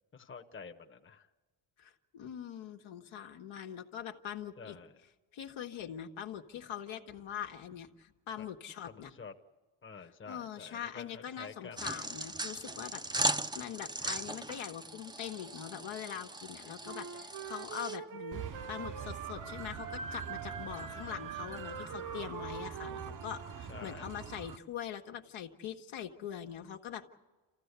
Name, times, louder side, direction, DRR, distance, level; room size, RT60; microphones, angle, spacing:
voice 1, 0.1-1.3 4.6-4.9 8.4-8.5 8.9-9.3 9.8-11.8 20.7-21.0 23.7-24.1, left 5 dB, 25° left, 5 dB, 1.2 m, -49 dB
voice 2, 1.8-4.8 5.3-9.1 10.0-18.4 18.7-27.1, left 9 dB, 75° left, 3 dB, 1.6 m, -43 dB
sound 1, 11.8-18.0, right 2 dB, 10° right, 0.7 m, -38 dB
Wind instrument woodwind instrument, 16.8-23.7, right 7 dB, 85° right, 2.0 m, -45 dB
sound 2, 18.3-24.6, right 6 dB, 40° right, 0.9 m, -44 dB
27.5 x 15.0 x 8.2 m, 1.3 s
cardioid pair, 105°, 48 cm